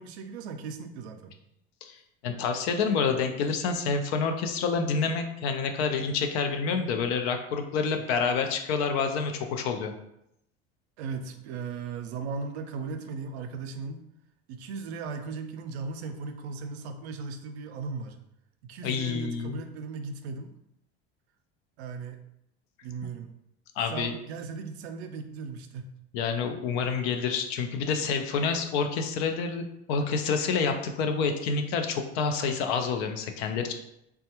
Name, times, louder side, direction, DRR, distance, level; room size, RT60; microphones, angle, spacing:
voice 1, 0.0-1.3 11.0-14.0 14.5-18.2 18.6-20.5 21.8-22.2 22.8-23.3 23.8-25.9, right 4 dB, 80° right, 7 dB, 0.5 m, -37 dB
voice 2, 1.8-9.9 18.8-19.6 23.8-24.1 26.1-33.7, left 5 dB, 70° left, 6 dB, 0.6 m, -28 dB
3.4 x 2.2 x 2.8 m, 0.80 s
hypercardioid pair, 80°, 32 cm